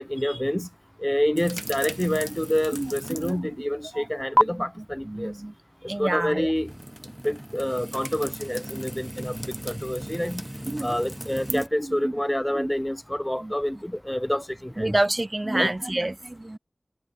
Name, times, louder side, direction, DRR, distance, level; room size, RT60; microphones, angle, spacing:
voice 1, 0.1-0.7 1.0-5.3 6.0-6.7 7.2-9.4 9.7-10.4 10.8-14.9 15.5-15.7, equal, 15° left, 0.5 m, -27 dB
sound 1, 1.4-3.5 3.8-4.4 6.6-11.7, right 1 dB, 15° right, 1.5 m, -32 dB
voice 2, 2.7-3.5 3.9-4.1 4.3-5.5 5.9-6.5 10.7-11.0 11.5-12.1 12.5-12.7 13.4-13.5 14.8-16.6, right 1 dB, 40° right, 2.6 m, -29 dB
wide cardioid pair, 45°, 0 cm